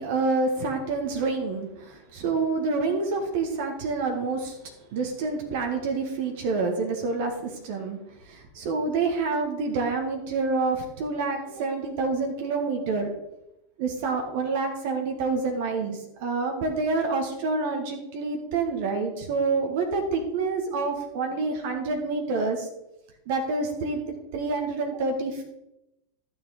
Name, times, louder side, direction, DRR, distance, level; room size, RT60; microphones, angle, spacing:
voice 1, 0.0-4.6 4.9-13.1 13.8-22.7 23.2-24.0 24.3-25.4, right 3 dB, 50° right, 3 dB, 1.6 m, -27 dB
13.0 x 6.6 x 5.0 m, 0.90 s
figure-of-eight pair, 90°, 0 cm